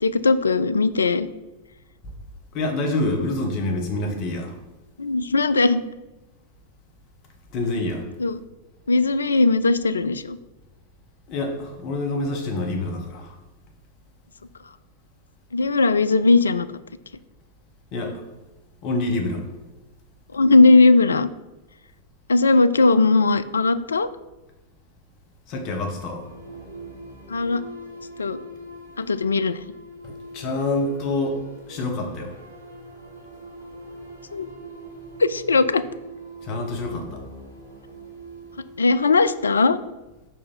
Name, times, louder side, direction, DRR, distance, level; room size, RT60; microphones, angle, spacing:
voice 1, 0.0-1.3 5.0-5.8 8.2-8.4 8.9-10.4 15.5-16.7 20.3-21.3 22.3-24.1 27.3-27.6 28.2-28.4 29.0-29.6 34.3-34.5 35.2-35.8 38.8-39.8, left 3 dB, 75° left, 14 dB, 0.3 m, -18 dB
voice 2, 2.5-4.6 7.5-8.1 11.3-13.4 17.9-18.3 18.8-19.5 25.5-26.3 30.0-31.4 31.7-32.3 36.4-37.2, left 2 dB, 40° left, 2 dB, 1.5 m, -27 dB
sound 1, 26.2-38.7, right 2 dB, 90° right, 2.0 m, -42 dB
5.0 x 4.7 x 5.5 m, 1.1 s
figure-of-eight pair, 90°, 0 cm